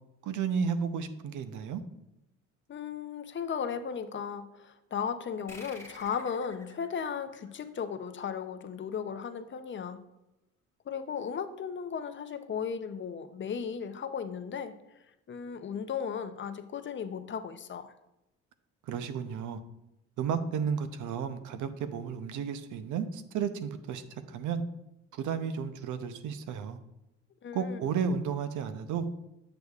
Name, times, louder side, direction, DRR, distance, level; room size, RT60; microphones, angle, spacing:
voice 1, 0.2-1.8 18.9-19.6 20.2-24.6 25.1-26.8 27.5-29.1, right 6 dB, 80° right, 10 dB, 0.6 m, -33 dB
voice 2, 2.7-10.0 10.9-17.9 27.4-27.8, left 7 dB, 40° left, 10 dB, 0.5 m, -36 dB
sound 1, 5.5-8.5, left 1 dB, 10° left, 1.2 m, -51 dB
8.0 x 6.7 x 2.4 m, 0.91 s
cardioid pair, 90°, 30 cm